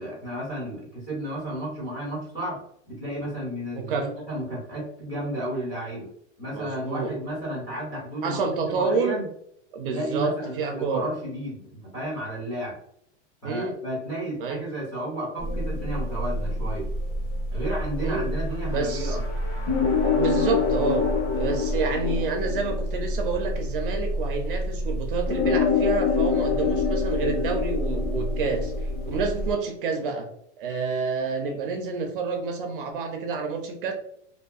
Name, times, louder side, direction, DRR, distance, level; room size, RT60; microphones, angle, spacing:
voice 1, 0.0-2.6 2.9-6.1 6.4-8.4 8.7-9.3 9.9-12.7 13.4-16.9 17.5-19.2, right 1 dB, 10° left, -8 dB, 0.4 m, -32 dB
voice 2, 3.7-4.1 6.5-7.1 8.2-9.2 9.7-11.0 13.4-13.8 14.4-14.6 18.0-18.3 18.7-19.2 20.1-21.0 21.3-28.7 29.0-30.3 30.6-33.9, right 4 dB, 50° right, 4 dB, 0.4 m, -28 dB
sound 1, 15.4-29.5, left 3 dB, 45° left, 1.4 m, -26 dB
sound 2, 18.2-22.5, left 2 dB, 70° left, 1.0 m, -38 dB
2.6 x 2.2 x 2.3 m, 0.71 s
supercardioid pair, 170°, 36 cm